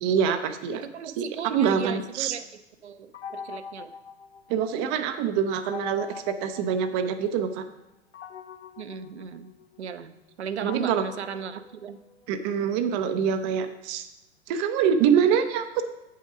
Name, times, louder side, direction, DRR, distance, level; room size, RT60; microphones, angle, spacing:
voice 1, 0.0-0.8 1.2-2.4 4.5-7.6 10.6-11.0 12.3-14.1 14.5-15.8, right 7 dB, 25° right, 9 dB, 0.4 m, -25 dB
voice 2, 0.7-2.5 2.8-3.9 8.8-9.5 9.8-12.0, right 7 dB, 70° right, 11 dB, 0.6 m, -36 dB
sound 1, 3.1-4.9 5.6-7.4 8.1-12.4, left 6 dB, 75° left, 0.8 m, -43 dB
8.2 x 5.6 x 4.9 m, 0.96 s
figure-of-eight pair, 95°, 35 cm